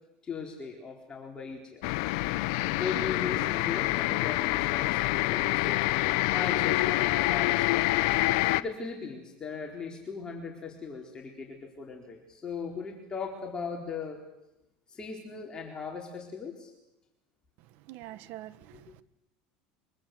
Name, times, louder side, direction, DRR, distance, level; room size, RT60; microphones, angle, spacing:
voice 1, 0.2-1.8 2.7-5.8 6.3-7.9 8.5-14.2 14.9-16.7, left 5 dB, 25° left, 1 dB, 4.2 m, -38 dB
sound 1, 1.8-8.6, left 19 dB, 75° left, 0.9 m, -26 dB
voice 2, 17.9-19.0, right 14 dB, 65° right, 16 dB, 1.3 m, -45 dB
24.0 x 24.0 x 7.9 m, 0.93 s
supercardioid pair, 120°, 3 cm